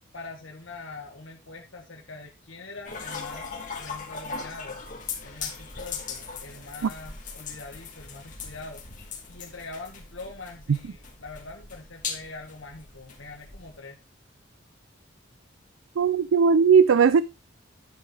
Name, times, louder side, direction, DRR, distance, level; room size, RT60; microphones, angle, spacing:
voice 1, 0.1-4.8 5.2-8.8 9.3-14.0, left 3 dB, 80° left, 1.7 m, -43 dB
sound 1, 2.9-13.8, left 5 dB, 40° left, 2.1 m, -39 dB
voice 2, 16.0-17.2, right 6 dB, 85° right, 0.4 m, -18 dB
10.0 x 7.8 x 3.3 m
head